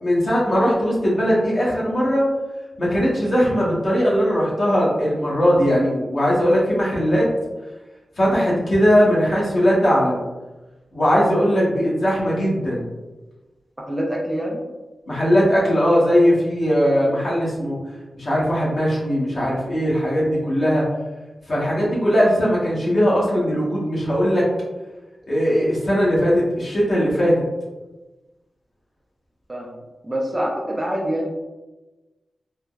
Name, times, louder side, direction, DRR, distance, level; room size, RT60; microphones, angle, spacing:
voice 1, 0.0-2.3 2.8-7.3 8.2-10.2 10.9-12.8 15.1-17.8 18.1-20.9 21.5-24.5 25.3-27.4, equal, 50° left, -6 dB, 0.9 m, -19 dB
voice 2, 13.9-14.6 29.5-31.3, equal, 15° right, -2 dB, 0.4 m, -26 dB
3.3 x 2.1 x 2.3 m, 1.1 s
wide cardioid pair, 125°, 0 cm